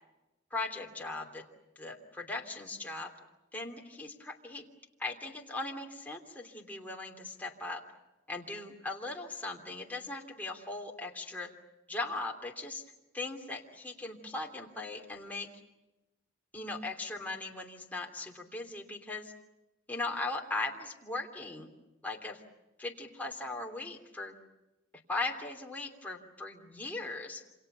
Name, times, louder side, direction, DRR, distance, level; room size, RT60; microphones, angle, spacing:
voice 1, 0.5-1.4 1.8-3.1 3.5-4.6 5.0-7.8 8.3-11.5 11.9-12.8 13.1-15.5 16.5-19.3 19.9-21.7 22.0-22.4 22.8-24.3 25.1-27.4, left 2 dB, 10° left, 1 dB, 3.1 m, -39 dB
28.0 x 27.0 x 6.9 m, 1.0 s
head